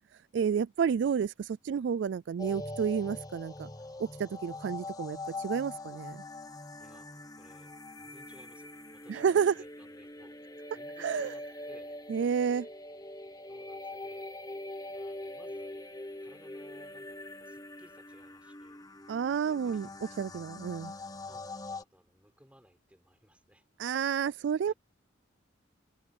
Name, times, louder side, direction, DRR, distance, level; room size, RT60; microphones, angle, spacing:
voice 1, 0.3-3.7 4.0-6.2 9.1-9.5 11.0-11.3 12.1-12.7 19.1-19.9 20.2-20.9 23.8-24.7, right 7 dB, 65° right, 0.3 m, -30 dB
sound 1, 2.4-21.8, left 2 dB, 20° left, 1.2 m, -43 dB
voice 2, 6.8-12.0 13.5-14.3 14.9-15.9 16.2-18.8 19.3-20.2 20.7-23.7 24.6-24.7, equal, 5° right, 6.6 m, -61 dB
head